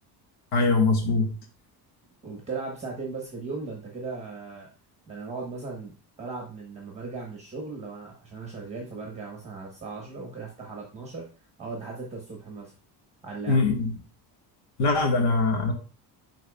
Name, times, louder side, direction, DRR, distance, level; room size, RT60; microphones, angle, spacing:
voice 1, 0.5-1.3 13.5-13.9 14.8-15.7, left 3 dB, 80° left, 3 dB, 1.8 m, -22 dB
voice 2, 2.2-4.7 5.1-5.9 6.2-11.3 11.6-12.7 13.2-13.6, right 4 dB, 15° right, 0 dB, 1.2 m, -37 dB
10.5 x 4.0 x 2.3 m, 0.36 s
cardioid pair, 170°, 40 cm